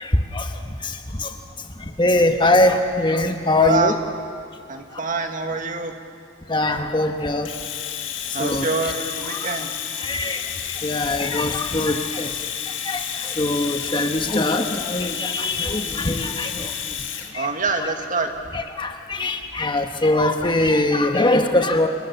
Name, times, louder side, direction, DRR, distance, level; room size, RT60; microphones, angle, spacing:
voice 1, 2.0-3.9 6.5-7.5 8.4-8.6 10.1-10.4 10.8-12.0 12.9-13.0 13.4-16.5 18.8-18.9 19.2-21.9, left 2 dB, 25° left, 5 dB, 1.2 m, -21 dB
voice 2, 3.6-4.0 4.7-5.9 8.3-9.7 17.3-18.3, right 4 dB, 40° right, 5 dB, 2.0 m, -25 dB
Domestic sounds home sounds, 7.4-17.3, left 9 dB, 75° left, 2.0 m, -30 dB
29.5 x 23.0 x 7.1 m, 2.3 s
head